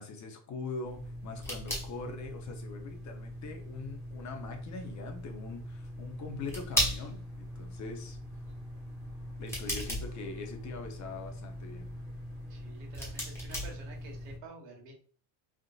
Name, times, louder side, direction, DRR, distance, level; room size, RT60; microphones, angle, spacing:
voice 1, 0.0-8.2 9.4-11.9, left 4 dB, 40° left, 4 dB, 0.7 m, -42 dB
sound 1, 0.8-14.4, equal, 5° left, 1.2 m, -38 dB
voice 2, 12.5-14.9, right 3 dB, 70° right, 0 dB, 1.4 m, -49 dB
3.6 x 2.5 x 2.4 m, 0.42 s
supercardioid pair, 115°, 47 cm